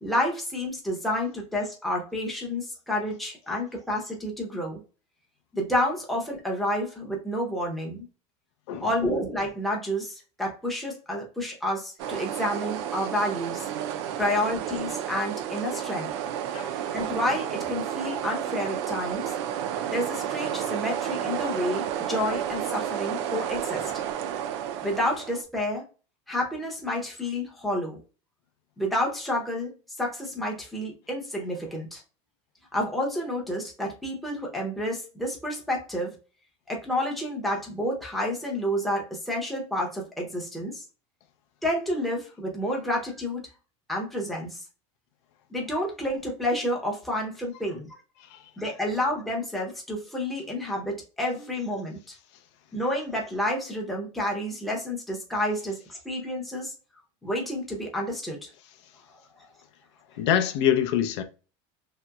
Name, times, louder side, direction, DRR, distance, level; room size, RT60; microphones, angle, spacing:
voice 1, 0.0-4.8 5.5-8.1 8.8-13.6 14.2-16.1 16.8-19.3 19.9-23.9 24.8-25.8 26.3-28.0 28.8-29.7 30.0-32.0 32.7-36.2 36.7-40.8 41.6-43.5 43.9-44.6 45.5-47.9 48.6-52.2 52.7-56.7 57.2-58.5, left 1 dB, ahead, 0.6 m, -29 dB
sound 1, 12.0-25.4, right 10 dB, 60° right, 0.4 m, -31 dB
voice 2, 60.2-61.2, left 9 dB, 65° left, 0.5 m, -24 dB
3.0 x 2.9 x 2.2 m
supercardioid pair, 170°, 16 cm